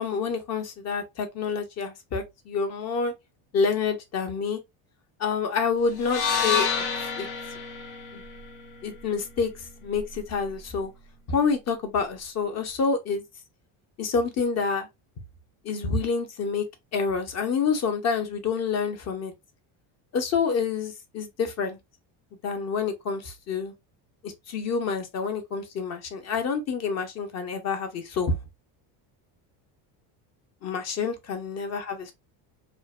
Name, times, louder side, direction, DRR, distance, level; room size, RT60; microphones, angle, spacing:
voice 1, 0.0-3.1 3.5-4.6 5.2-6.7 7.2-7.3 8.1-8.2 8.8-10.9 11.3-13.2 14.0-14.9 15.6-16.6 16.9-19.3 20.1-21.8 22.4-23.7 24.2-28.4 30.6-32.1, left 5 dB, 35° left, 0.6 m, -28 dB
sound 1, 6.0-10.2, left 6 dB, 85° left, 0.8 m, -30 dB
2.5 x 2.1 x 2.3 m
cardioid pair, 130°, 48 cm